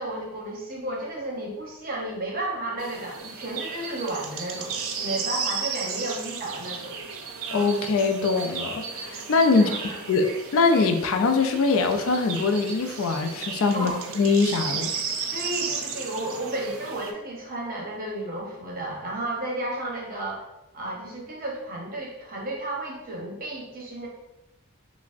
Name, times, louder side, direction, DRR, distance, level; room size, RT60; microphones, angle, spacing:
voice 1, 0.0-7.0 9.5-10.0 13.7-13.9 15.3-20.4 20.7-24.1, right 1 dB, 40° right, -2 dB, 0.8 m, -33 dB
sound 1, 2.8-17.1, right 5 dB, 60° right, 0.4 m, -34 dB
voice 2, 7.5-9.7 10.1-14.9, left 4 dB, 60° left, 6 dB, 0.4 m, -23 dB
5.7 x 2.0 x 2.5 m, 0.97 s
head